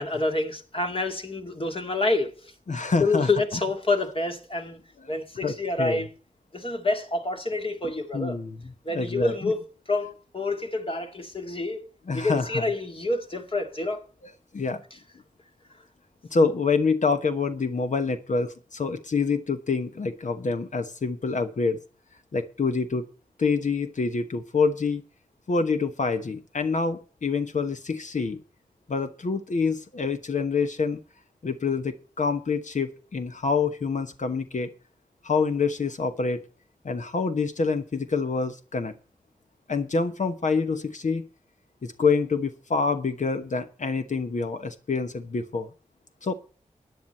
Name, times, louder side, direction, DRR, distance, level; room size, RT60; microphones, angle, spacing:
voice 1, 0.0-2.5 3.0-4.8 5.1-6.1 6.5-8.4 8.9-11.9 12.1-14.0, left 2 dB, 40° left, 2.3 m, -28 dB
voice 2, 2.7-3.6 5.1-5.2 5.4-6.0 8.1-8.6 8.9-9.5 12.1-12.6 14.5-14.8 16.3-21.8 22.3-23.0 23.4-25.0 25.5-28.4 28.9-31.0 31.4-34.7 35.2-36.4 36.8-38.9 39.7-41.2 41.8-45.7 46.2-46.3, left 4 dB, 60° left, 1.1 m, -26 dB
14.0 x 9.5 x 4.3 m
cardioid pair, 40°, 14 cm